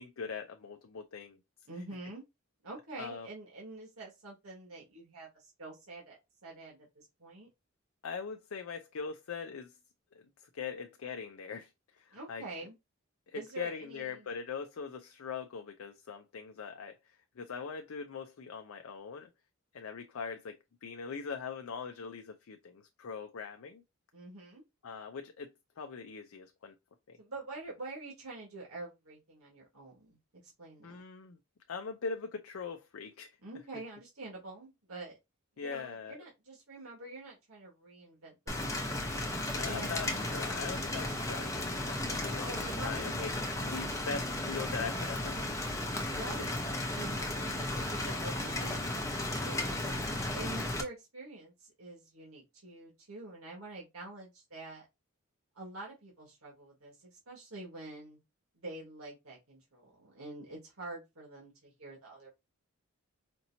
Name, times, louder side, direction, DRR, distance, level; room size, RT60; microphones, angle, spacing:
voice 1, 0.0-1.4 3.0-3.3 8.0-9.7 10.1-11.7 12.0-12.4 13.3-16.9 17.4-19.3 19.7-23.8 24.8-26.7 27.1-27.2 30.8-31.4 31.7-33.3 35.6-36.1 39.5-43.3 43.6-45.7 49.8-50.0, left 5 dB, 70° left, 0.5 m, -41 dB
voice 2, 1.7-2.2 2.6-6.2 6.4-7.5 12.1-12.7 13.3-14.3 24.1-24.6 27.2-30.2 30.6-31.0 33.4-35.2 35.6-39.0 39.6-40.2 42.5-43.5 46.0-46.5 46.9-49.0 49.4-54.9 55.6-58.2 58.5-62.3, right 2 dB, 80° right, 1.8 m, -46 dB
Rain, 38.5-50.8, left 1 dB, 15° left, 0.7 m, -35 dB
5.2 x 2.9 x 2.7 m
head